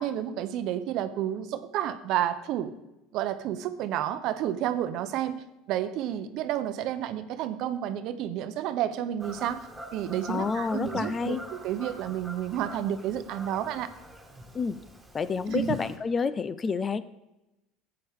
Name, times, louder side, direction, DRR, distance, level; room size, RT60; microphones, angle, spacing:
voice 1, 0.0-2.7 3.1-9.7 9.9-11.4 11.6-13.9 15.5-15.8, right 11 dB, 60° right, 11 dB, 0.8 m, -30 dB
Fowl / Bird vocalization bird call bird song, 9.2-16.0, right 1 dB, 10° right, 2.1 m, -45 dB
voice 2, 10.3-11.4 14.5-14.8 15.1-17.0, left 5 dB, 25° left, 15 dB, 0.5 m, -29 dB
12.5 x 8.8 x 3.6 m, 0.96 s
supercardioid pair, 105°, 0 cm